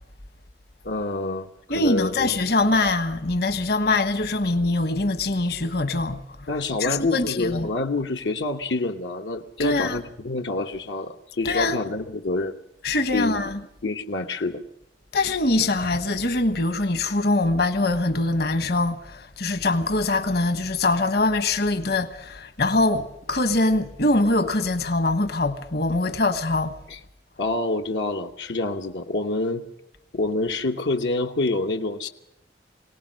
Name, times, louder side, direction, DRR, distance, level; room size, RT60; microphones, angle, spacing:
voice 1, 0.8-1.5 1.7-2.3 6.5-12.5 13.1-13.4 13.8-14.6 26.9-27.0 27.4-29.6 30.1-32.1, left 2 dB, 85° left, 1.1 m, -27 dB
voice 2, 1.7-6.5 6.8-7.7 9.6-10.0 11.4-11.8 12.8-13.6 15.1-26.7, left 2 dB, 60° left, 1.3 m, -23 dB
22.5 x 18.5 x 6.3 m
head